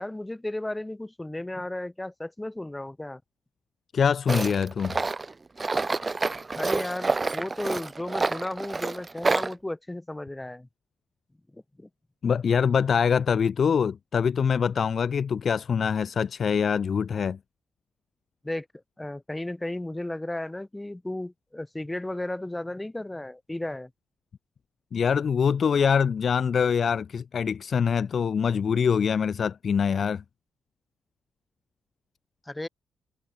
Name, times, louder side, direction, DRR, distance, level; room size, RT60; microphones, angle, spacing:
voice 1, 0.0-3.2 6.5-10.7 11.5-11.9 18.4-18.7 19.0-23.9 32.5-32.7, left 1 dB, 10° left, 4.1 m, -34 dB
voice 2, 3.9-5.0 12.2-17.4 24.9-30.2, left 6 dB, 45° left, 0.5 m, -24 dB
Tools, 4.3-9.5, right 3 dB, 20° right, 0.9 m, -28 dB
wide cardioid pair, 150°, 0 cm